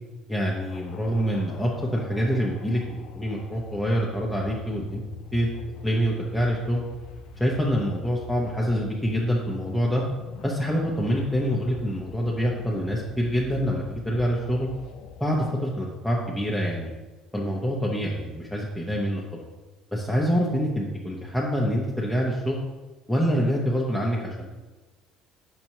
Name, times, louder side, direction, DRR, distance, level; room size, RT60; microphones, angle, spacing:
voice 1, 0.3-5.0 5.3-5.5 5.8-6.8 7.4-10.0 10.4-14.7 15.2-16.9 17.3-19.4 19.9-22.6 23.1-24.6, equal, 5° left, -4 dB, 0.8 m, -26 dB
sound 1, 0.7-15.6, left 6 dB, 65° left, 0.5 m, -44 dB
5.9 x 5.5 x 3.0 m, 1.2 s
cardioid pair, 110°, 0 cm